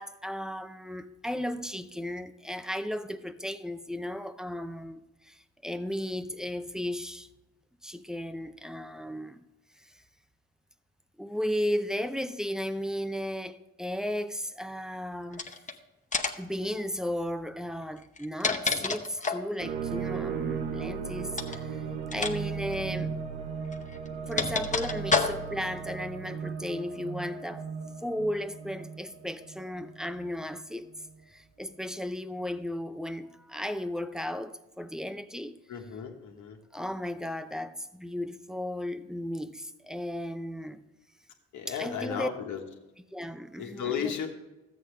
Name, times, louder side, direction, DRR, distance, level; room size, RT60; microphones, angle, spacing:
voice 1, 0.0-7.3 7.8-9.4 11.2-15.5 16.3-21.8 22.1-23.2 24.3-27.7 28.0-30.9 31.3-35.6 36.7-40.8 41.7-42.3 43.1-44.2, equal, ahead, 0.6 m, -35 dB
sound 1, 15.3-15.7 16.1-16.5 18.0-19.5 21.3-21.6 22.1-22.4 22.6-22.7 23.7-25.7, left 4 dB, 25° left, 0.9 m, -29 dB
sound 2, 19.6-30.6, right 6 dB, 60° right, 1.0 m, -36 dB
voice 2, 35.7-36.6 41.5-42.6 43.6-44.3, left 7 dB, 75° left, 1.5 m, -34 dB
13.0 x 8.5 x 3.3 m
cardioid pair, 90°, 30 cm